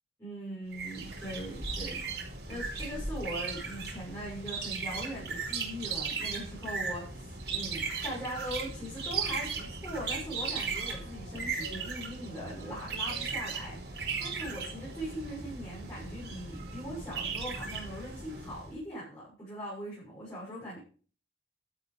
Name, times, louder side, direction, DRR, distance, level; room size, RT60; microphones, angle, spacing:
voice 1, 0.2-20.8, equal, 20° left, -7 dB, 6.8 m, -41 dB
magpie shrike, 0.7-18.7, right 4 dB, 75° right, 4.9 m, -37 dB
12.5 x 8.4 x 5.3 m, 0.40 s
head